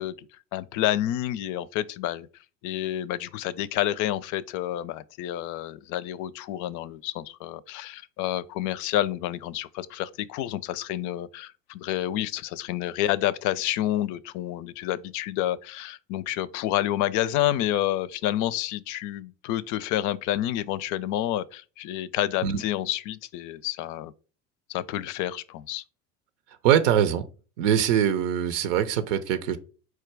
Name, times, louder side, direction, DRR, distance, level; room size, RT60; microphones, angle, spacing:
voice 1, 0.0-2.3 2.6-24.1 24.7-25.8, left 13 dB, 50° left, 0.5 m, -29 dB
voice 2, 26.6-27.3 27.6-29.6, right 9 dB, 75° right, 0.6 m, -22 dB
4.5 x 2.3 x 4.5 m
hypercardioid pair, 85°, 37 cm